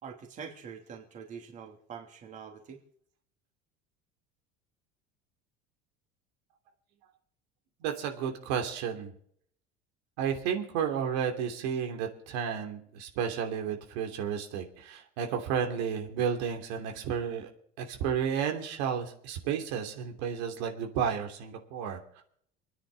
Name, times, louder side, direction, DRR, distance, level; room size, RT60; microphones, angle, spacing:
voice 1, 0.0-2.8, right 6 dB, 35° right, 2 dB, 3.0 m, -45 dB
voice 2, 7.8-9.1 10.2-17.5 17.8-22.2, right 7 dB, 85° right, 3 dB, 3.0 m, -32 dB
28.5 x 10.0 x 4.1 m, 0.64 s
cardioid pair, 145°, 21 cm